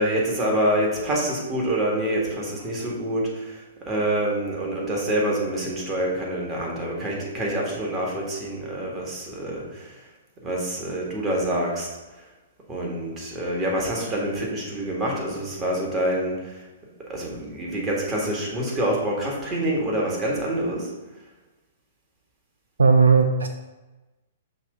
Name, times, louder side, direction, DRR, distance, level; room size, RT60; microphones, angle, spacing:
voice 1, 0.0-9.9 10.4-11.9 12.7-16.6 17.1-20.9, right 1 dB, 20° right, -3 dB, 1.9 m, -26 dB
voice 2, 22.8-23.5, right 5 dB, 80° right, 6 dB, 0.5 m, -16 dB
6.2 x 2.9 x 5.4 m, 1.1 s
figure-of-eight pair, 115°, 0 cm